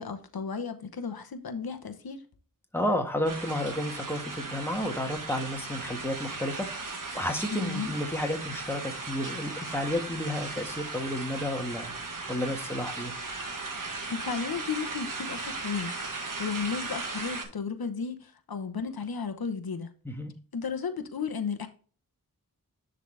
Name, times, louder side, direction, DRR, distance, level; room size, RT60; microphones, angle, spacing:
voice 1, 0.0-2.2 7.5-7.9 14.1-19.9 20.5-21.7, left 5 dB, 90° left, 0.9 m, -34 dB
voice 2, 2.7-11.9 12.3-13.1 20.0-20.3, left 1 dB, 5° left, 1.5 m, -31 dB
sound 1, 3.2-17.4, right 3 dB, 60° right, 1.5 m, -37 dB
10.5 x 4.0 x 3.3 m
wide cardioid pair, 70°, 36 cm